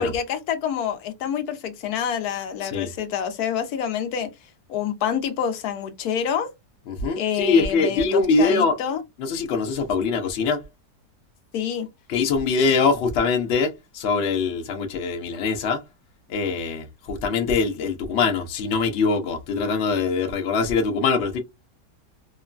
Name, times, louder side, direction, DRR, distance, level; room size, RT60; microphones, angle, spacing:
voice 1, 0.0-4.3 4.7-6.5 7.2-9.0 11.5-11.9, left 8 dB, 70° left, 1.0 m, -27 dB
voice 2, 6.9-8.8 9.2-10.6 12.1-15.8 16.3-21.4, left 4 dB, 85° left, 0.5 m, -23 dB
3.0 x 2.2 x 2.3 m
omnidirectional pair, 1.8 m